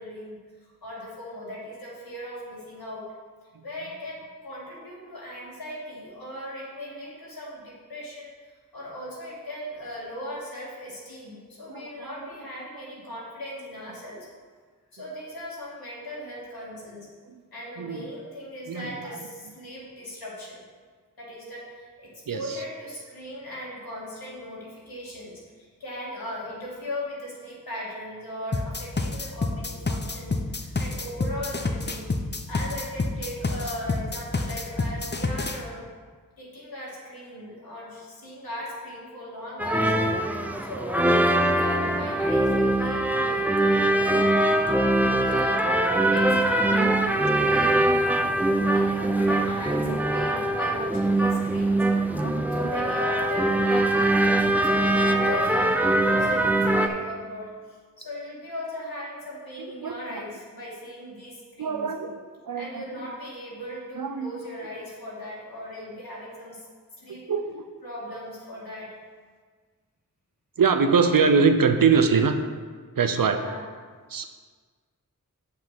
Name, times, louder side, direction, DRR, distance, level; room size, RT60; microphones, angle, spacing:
voice 1, 0.0-3.1 3.6-8.4 8.7-14.3 14.9-17.1 17.5-20.6 21.2-32.1 32.5-35.9 36.4-40.0 40.6-44.4 44.9-48.0 48.3-48.5 48.7-51.9 52.5-61.9 62.5-66.6 67.0-67.2 67.8-68.9 73.3-73.7, left 1 dB, 85° left, -6 dB, 2.7 m, -38 dB
voice 2, 11.7-12.3 17.3-17.4 17.8-18.1 18.7-18.9 22.3-22.6 46.7-46.9 47.6-47.9 48.2-48.3 48.6-48.7 49.8-50.0 52.2-52.7 55.6-55.7 59.8-60.2 61.6-63.1 63.9-64.3 67.3-67.7 70.6-72.4 73.0-73.4 74.1-74.3, right 5 dB, 70° right, 8 dB, 0.8 m, -24 dB
sound 1, 28.5-35.6, left 3 dB, 30° left, 0.8 m, -28 dB
Sevilla Street Brass Band, 39.6-56.9, right 1 dB, 5° right, 0.7 m, -22 dB
7.5 x 5.7 x 6.0 m, 1.6 s
cardioid pair, 40°, 35 cm